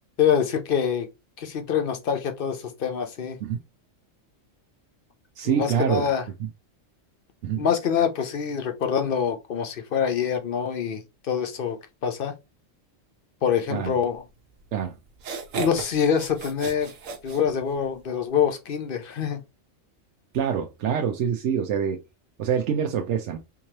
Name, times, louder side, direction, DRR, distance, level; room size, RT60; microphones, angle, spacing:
voice 1, 0.2-1.1 1.4-3.4 5.4-6.2 7.6-11.8 12.0-12.3 13.4-14.2 15.6-16.9 17.2-19.4, left 7 dB, 50° left, 0.8 m, -25 dB
voice 2, 5.4-6.0 6.4-6.5 7.4-7.7 13.7-13.9 14.7-14.9 20.3-22.0 22.4-23.4, right 8 dB, 70° right, 0.9 m, -25 dB
sound 1, 14.6-14.7 15.1-18.0, right 5 dB, 85° right, 1.2 m, -35 dB
3.6 x 3.1 x 2.8 m
omnidirectional pair, 1.3 m